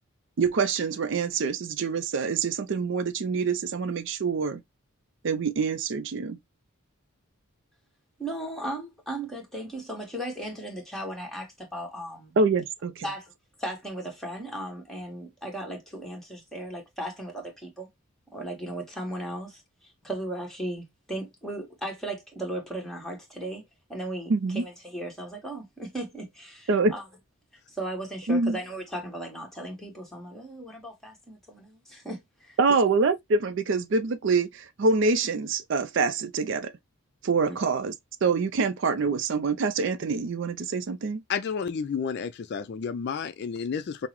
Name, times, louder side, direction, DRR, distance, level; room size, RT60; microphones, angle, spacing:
voice 1, 0.4-4.6 5.2-6.4 12.4-13.0 24.3-24.6 26.7-26.9 28.3-28.6 32.6-36.7 37.2-37.9 38.2-41.2, right 4 dB, 55° right, 0.4 m, -25 dB
voice 2, 8.2-12.3 13.0-13.3 13.6-17.9 18.3-27.0 27.7-32.6 37.5-37.6, right 1 dB, ahead, 1.2 m, -36 dB
voice 3, 41.3-44.1, left 6 dB, 50° left, 0.3 m, -31 dB
5.7 x 2.0 x 2.9 m
head